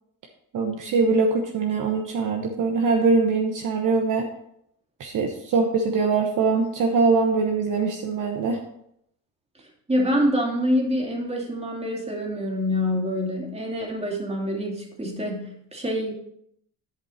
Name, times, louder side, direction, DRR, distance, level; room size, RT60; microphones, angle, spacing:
voice 1, 0.5-4.3 5.0-8.6, right 4 dB, 50° right, 3 dB, 1.1 m, -22 dB
voice 2, 9.9-16.1, equal, 15° right, 0 dB, 2.6 m, -26 dB
11.0 x 5.3 x 4.3 m, 0.74 s
supercardioid pair, 90°, 39 cm